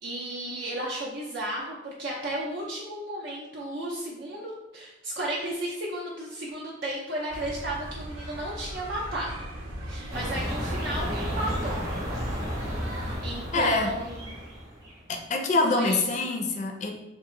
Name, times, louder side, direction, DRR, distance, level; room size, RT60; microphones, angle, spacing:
voice 1, 0.0-9.5 9.8-11.8 13.0-14.3 15.7-16.0, right 1 dB, 60° right, -3 dB, 0.5 m, -33 dB
sound 1, 7.3-13.2, right 1 dB, 90° right, 0.8 m, -38 dB
sound 2, 10.1-15.0, equal, 15° right, 0.8 m, -33 dB
voice 2, 13.5-13.9 15.1-16.9, left 3 dB, 40° left, 3 dB, 0.4 m, -25 dB
2.8 x 2.4 x 3.7 m, 0.97 s
head